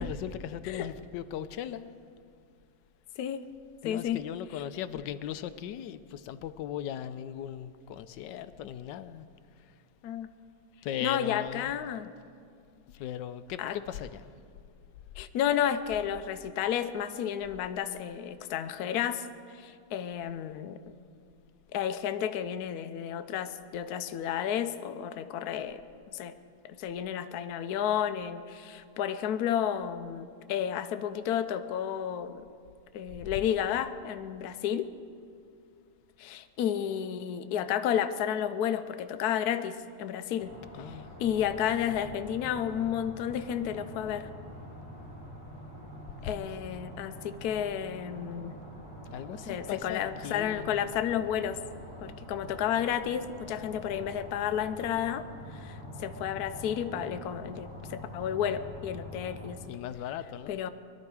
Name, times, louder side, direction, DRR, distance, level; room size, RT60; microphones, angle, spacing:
voice 1, 0.0-2.0 3.8-9.3 10.8-11.7 13.0-14.3 40.7-41.1 46.2-46.6 49.1-50.8 59.7-60.6, left 10 dB, 85° left, 12 dB, 1.2 m, -38 dB
voice 2, 3.8-4.2 10.0-10.3 11.0-12.1 13.6-13.8 15.2-19.3 19.5-20.8 21.7-25.8 26.1-26.4 26.6-32.5 32.9-34.9 36.2-40.5 41.2-44.3 46.2-48.5 49.3-51.6 52.0-55.2 55.5-59.6 60.5-60.7, left 9 dB, 70° left, 10 dB, 1.1 m, -31 dB
sound 1, 40.4-59.5, equal, 30° right, 3.8 m, -45 dB
21.5 x 12.0 x 4.7 m, 2.3 s
omnidirectional pair, 1.9 m